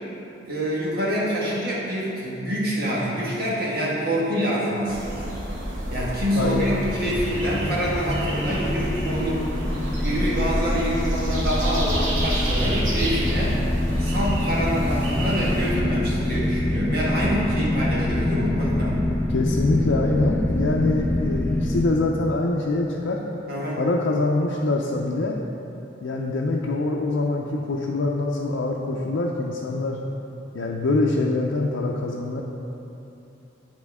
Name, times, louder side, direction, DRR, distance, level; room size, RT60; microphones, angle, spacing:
voice 1, 0.4-5.3 5.9-9.5 10.0-13.6 14.0-19.0 23.5-23.8, equal, 55° right, -6 dB, 1.6 m, -26 dB
sound 1, 4.9-15.8, right 1 dB, 85° right, 1.3 m, -30 dB
sound 2, 7.0-21.8, left 1 dB, 10° left, 0.4 m, -25 dB
voice 2, 19.3-23.2 23.8-25.4 26.0-30.0 30.5-32.4, left 2 dB, 80° left, -2 dB, 0.5 m, -24 dB
9.6 x 4.4 x 3.6 m, 2.8 s
head